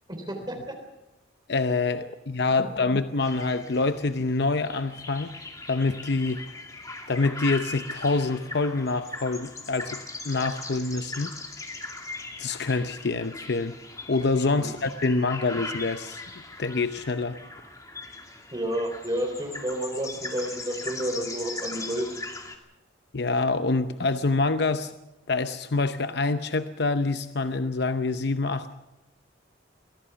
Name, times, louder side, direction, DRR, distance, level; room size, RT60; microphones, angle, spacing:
voice 1, 0.1-0.8 18.5-22.1, right 1 dB, 25° right, 3 dB, 3.4 m, -30 dB
voice 2, 1.5-5.3 5.7-6.4 7.1-10.0 10.2-11.3 12.4-13.7 14.1-16.2 16.6-17.4 23.1-24.9 25.3-28.8, left 3 dB, 60° left, 10 dB, 0.8 m, -26 dB
sound 1, 3.2-22.6, left 2 dB, 20° left, 2.4 m, -39 dB
24.0 x 17.0 x 7.0 m, 0.94 s
head